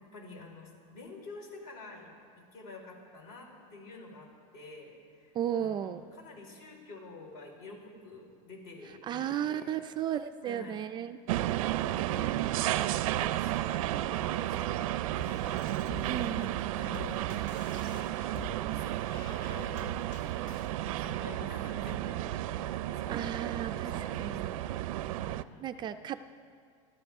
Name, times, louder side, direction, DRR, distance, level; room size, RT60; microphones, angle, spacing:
voice 1, 0.0-9.8 10.4-10.8 11.7-17.5 17.7-24.7 25.2-26.0, left 3 dB, 60° left, 0 dB, 4.5 m, -49 dB
voice 2, 5.4-6.0 9.1-11.2 16.1-16.9 23.1-24.5 25.6-26.2, right 10 dB, 25° right, 9 dB, 0.4 m, -34 dB
sound 1, 11.3-25.4, right 14 dB, 85° right, 0.5 m, -33 dB
sound 2, 15.2-20.8, left 5 dB, 85° left, 1.7 m, -48 dB
29.0 x 12.5 x 3.6 m, 2.2 s
supercardioid pair, 150°, 17 cm